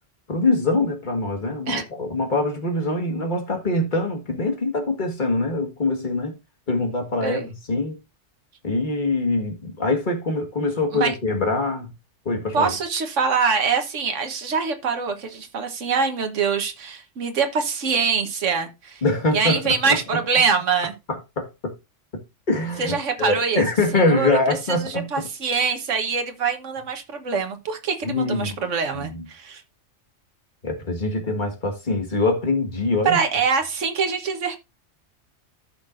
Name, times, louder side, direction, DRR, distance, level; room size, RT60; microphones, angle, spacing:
voice 1, 0.3-6.4 6.7-8.0 8.6-11.9 12.3-12.7 19.0-20.0 21.1-21.7 22.5-25.3 28.0-28.6 28.9-29.2 30.6-33.2, left 2 dB, 40° left, 1.8 m, -24 dB
voice 2, 12.5-19.0 19.3-20.9 22.8-23.6 23.9-29.6 33.0-34.6, right 5 dB, 80° right, 1.5 m, -24 dB
14.5 x 5.9 x 2.5 m
omnidirectional pair, 1.2 m